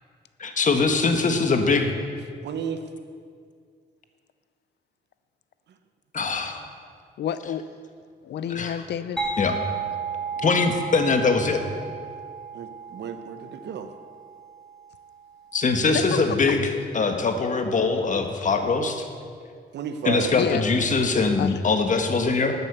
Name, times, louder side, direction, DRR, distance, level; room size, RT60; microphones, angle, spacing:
voice 1, 0.4-1.9 6.1-6.6 8.5-8.7 9.4-9.5 10.4-11.6 15.5-19.1 20.0-22.6, left 4 dB, 45° left, 6 dB, 1.5 m, -22 dB
voice 2, 2.4-2.8 12.5-13.9 19.7-20.3, right 8 dB, 80° right, 8 dB, 1.0 m, -32 dB
voice 3, 7.2-7.7 8.2-9.2 10.4-10.5 15.9-16.5 20.3-20.6 21.4-21.6, left 9 dB, 80° left, 13 dB, 0.6 m, -29 dB
sound 1, 9.2-14.6, right 4 dB, 5° left, 3.1 m, -33 dB
13.0 x 9.0 x 6.8 m, 2.1 s
cardioid pair, 100°, 18 cm